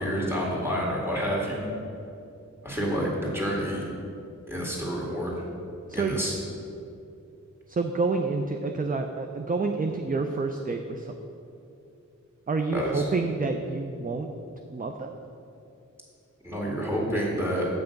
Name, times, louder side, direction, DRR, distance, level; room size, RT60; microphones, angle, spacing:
voice 1, 0.0-1.7 2.6-3.9 4.5-5.4 5.9-6.3 12.7-13.1 16.4-17.7, equal, 10° right, -2 dB, 2.0 m, -28 dB
voice 2, 5.9-6.4 7.7-11.2 12.5-14.3 14.7-15.1, right 3 dB, 30° right, 5 dB, 0.4 m, -28 dB
7.7 x 5.8 x 5.2 m, 2.7 s
wide cardioid pair, 75°, 31 cm